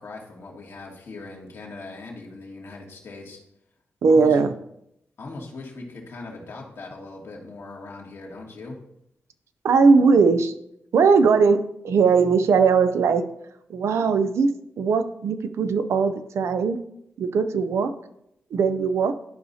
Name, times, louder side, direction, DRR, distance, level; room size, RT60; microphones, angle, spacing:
voice 1, 0.0-3.4 4.1-4.4 5.2-8.8, left 3 dB, 70° left, -1 dB, 1.8 m, -39 dB
voice 2, 4.0-4.5 9.6-10.5 10.9-13.2 13.7-14.5 14.8-16.8 17.2-17.9 18.5-19.1, right 5 dB, 85° right, 10 dB, 0.5 m, -19 dB
12.0 x 4.8 x 2.7 m, 0.78 s
cardioid pair, 85°, 5 cm